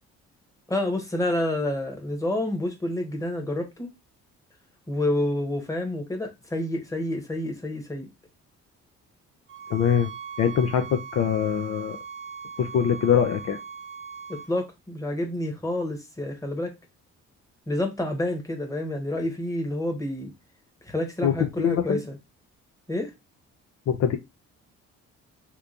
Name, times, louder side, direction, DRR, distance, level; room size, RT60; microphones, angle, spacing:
voice 1, 0.7-3.9 4.9-8.1 14.3-16.7 17.7-20.3 20.8-22.2 22.9-23.1, left 1 dB, 10° left, 1.1 m, -28 dB
sound 1, 9.5-14.5, right 6 dB, 45° right, 0.9 m, -40 dB
voice 2, 9.7-10.1 10.4-12.0 12.6-13.6 21.2-22.0 23.9-24.2, left 8 dB, 60° left, 0.5 m, -23 dB
2.9 x 2.3 x 3.7 m
cardioid pair, 90°, 30 cm